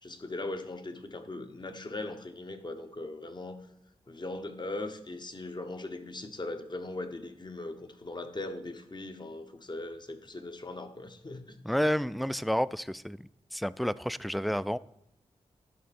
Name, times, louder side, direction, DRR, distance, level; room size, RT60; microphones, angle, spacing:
voice 1, 0.0-3.6 4.1-11.6, left 2 dB, 35° left, 1.2 m, -39 dB
voice 2, 11.6-13.2 13.5-14.8, equal, ahead, 0.3 m, -30 dB
12.0 x 4.5 x 4.3 m
cardioid pair, 40°, 12 cm